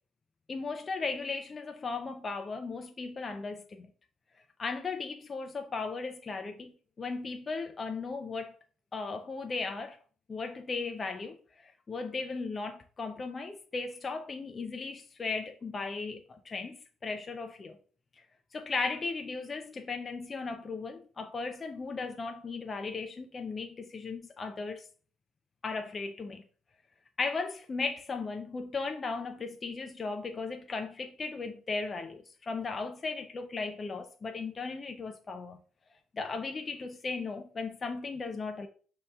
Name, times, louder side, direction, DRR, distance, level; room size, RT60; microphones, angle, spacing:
voice 1, 0.5-3.9 4.6-6.7 7.0-8.5 8.9-10.0 10.3-17.8 18.5-24.9 25.6-26.4 27.2-35.6 36.1-38.7, left 4 dB, 35° left, 0.4 m, -36 dB
6.3 x 2.8 x 2.3 m
cardioid pair, 90°, 0 cm